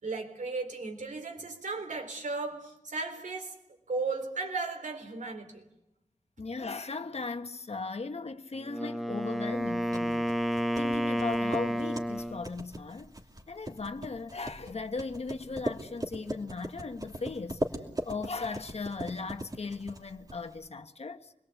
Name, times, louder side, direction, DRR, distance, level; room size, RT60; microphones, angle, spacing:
voice 1, 0.0-3.6 3.9-5.6, right 3 dB, 80° right, 4.0 m, -35 dB
voice 2, 6.4-10.2 10.8-13.1 13.5-17.6 18.0-21.3, left 4 dB, 55° left, 1.4 m, -37 dB
Wind instrument woodwind instrument, 8.6-12.5, equal, ahead, 1.1 m, -31 dB
sound 1, 9.6-20.7, right 1 dB, 30° right, 2.6 m, -40 dB
26.0 x 21.5 x 8.4 m
wide cardioid pair, 95°, 13 cm